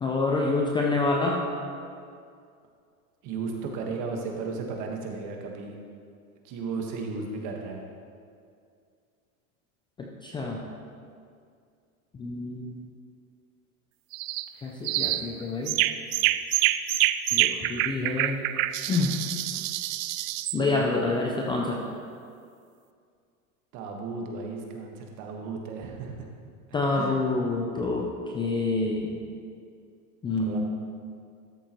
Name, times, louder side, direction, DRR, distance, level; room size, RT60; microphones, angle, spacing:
voice 1, 0.0-1.4 10.2-10.7 12.2-12.8 14.6-15.7 17.3-18.4 18.9-19.1 20.5-21.8 26.7-28.0 28.3-29.1 30.2-30.6, left 3 dB, 10° left, -1 dB, 0.4 m, -27 dB
voice 2, 3.2-5.7 6.4-7.9 14.5-14.8 23.7-26.3 26.9-27.2 30.4-30.6, right 4 dB, 45° right, 1 dB, 1.4 m, -35 dB
sound 1, 14.1-14.5 14.8-15.3 15.7-20.6, right 14 dB, 70° right, 0.5 m, -26 dB
13.0 x 7.1 x 3.0 m, 2.3 s
supercardioid pair, 135°, 43 cm